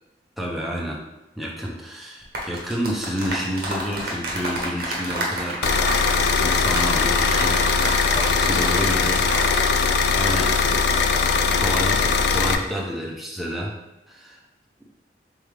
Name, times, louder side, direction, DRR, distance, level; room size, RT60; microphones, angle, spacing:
voice 1, 0.4-1.0 1.4-5.6 6.4-7.8 8.1-10.9 11.6-13.7 14.1-14.4, equal, ahead, -3 dB, 0.5 m, -30 dB
sound 1, 2.2-9.7 10.0-10.2, right 1 dB, 55° right, 0.8 m, -30 dB
sound 2, 5.6-12.6, left 5 dB, 65° left, 0.3 m, -20 dB
3.5 x 3.5 x 3.2 m, 0.93 s
head